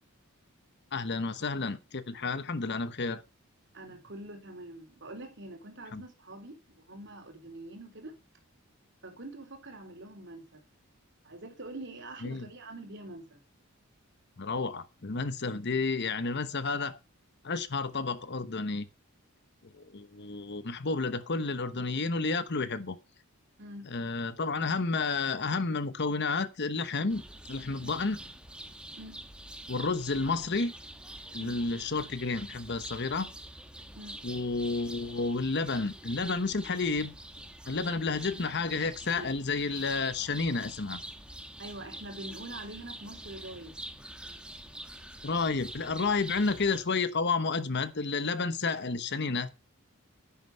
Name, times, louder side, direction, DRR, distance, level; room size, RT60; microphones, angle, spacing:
voice 1, 0.9-3.2 5.9-6.0 12.2-12.5 14.4-17.0 17.4-18.9 19.7-23.0 23.9-27.2 27.5-28.2 29.7-30.7 31.3-33.3 34.2-37.1 37.7-41.0 45.2-49.5, left 4 dB, 55° left, 1.0 m, -31 dB
voice 2, 3.7-8.2 9.0-10.6 11.2-13.4 23.6-23.9 27.8-27.9 29.0-29.2 31.4-31.6 33.9-34.2 39.2-39.3 41.6-43.8, right 1 dB, 55° right, 3.2 m, -45 dB
sound 1, 27.1-46.8, right 1 dB, 5° right, 1.2 m, -46 dB
10.0 x 9.6 x 5.5 m
head